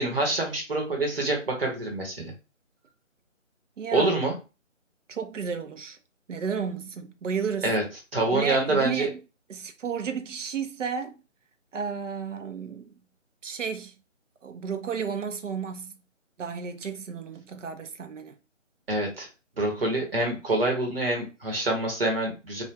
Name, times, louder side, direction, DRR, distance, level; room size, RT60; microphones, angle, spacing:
voice 1, 0.0-2.3 3.9-4.3 7.6-7.8 8.1-9.1 18.9-19.3 19.6-22.6, right 2 dB, 50° right, 1.1 m, -26 dB
voice 2, 3.8-4.1 5.1-6.0 6.3-7.7 8.3-9.2 9.5-11.1 11.7-12.9 13.4-13.9 14.4-16.0 16.4-18.3, right 6 dB, 70° right, 0.6 m, -32 dB
2.3 x 2.3 x 3.1 m
figure-of-eight pair, 165°, 39 cm